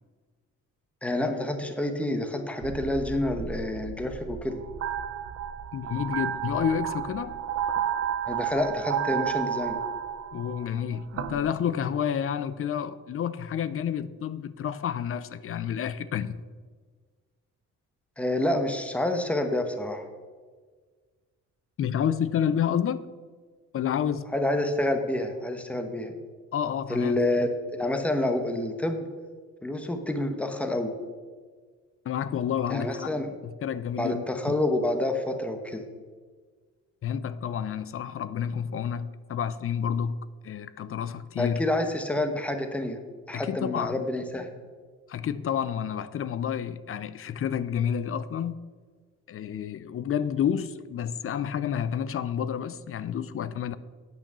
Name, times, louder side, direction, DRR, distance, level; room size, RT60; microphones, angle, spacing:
voice 1, 1.0-4.6 8.3-9.8 18.2-20.1 24.3-26.2 26.9-29.1 29.6-30.9 32.7-33.3 34.0-35.8 41.4-43.0 43.3-44.5, left 1 dB, 5° left, 1.0 m, -28 dB
sound 1, 2.6-11.5, right 9 dB, 50° right, 0.7 m, -32 dB
voice 2, 5.7-7.4 10.3-16.4 21.8-23.1 23.7-24.3 26.5-27.2 32.0-33.1 33.4-34.5 37.0-40.2 40.4-41.6 43.3-44.0 45.1-48.6 49.3-53.8, left 8 dB, 45° left, 0.5 m, -29 dB
9.1 x 5.9 x 6.7 m
cardioid pair, 90°, 30 cm